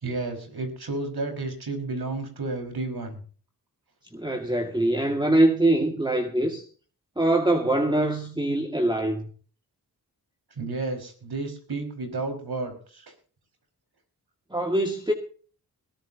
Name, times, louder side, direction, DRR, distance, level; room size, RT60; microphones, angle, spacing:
voice 1, 0.0-3.2 10.6-13.1, right 3 dB, 65° right, 5.3 m, -32 dB
voice 2, 4.1-6.6 7.2-9.3 14.5-15.1, right 1 dB, 10° right, 2.1 m, -23 dB
20.5 x 13.5 x 2.9 m
cardioid pair, 55°, 40 cm